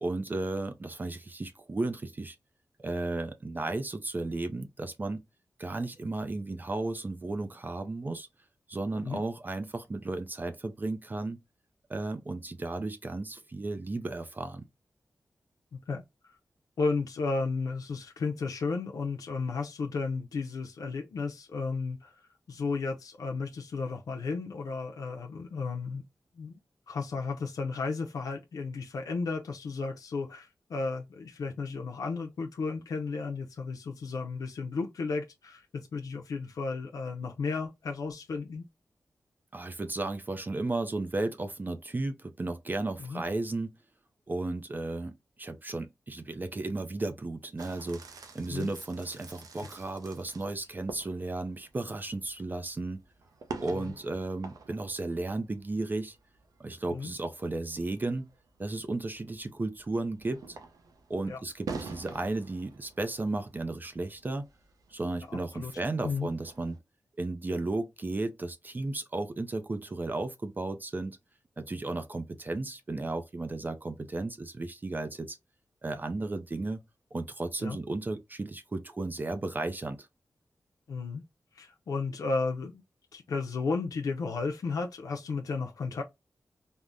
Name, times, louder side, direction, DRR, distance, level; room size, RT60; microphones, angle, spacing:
voice 1, 0.0-2.4 2.8-5.2 5.6-8.3 8.7-11.4 11.9-14.6 39.5-43.7 44.3-53.0 53.6-56.2 56.6-58.3 58.6-60.6 61.1-64.5 64.9-66.8 67.2-71.2 71.6-75.4 75.8-76.8 77.1-80.1, right 2 dB, 30° right, 0.4 m, -34 dB
voice 2, 15.7-16.4 16.8-26.0 26.4-26.6 26.9-38.6 43.0-43.3 48.5-48.7 53.7-53.9 56.9-57.1 61.3-61.4 65.3-65.7 66.0-66.3 77.6-77.8 80.9-81.2 81.5-82.8 83.1-86.0, left 4 dB, 85° left, 0.4 m, -34 dB
sound 1, 47.6-66.8, right 4 dB, 90° right, 0.5 m, -48 dB
3.4 x 2.0 x 2.5 m
wide cardioid pair, 80°, 6 cm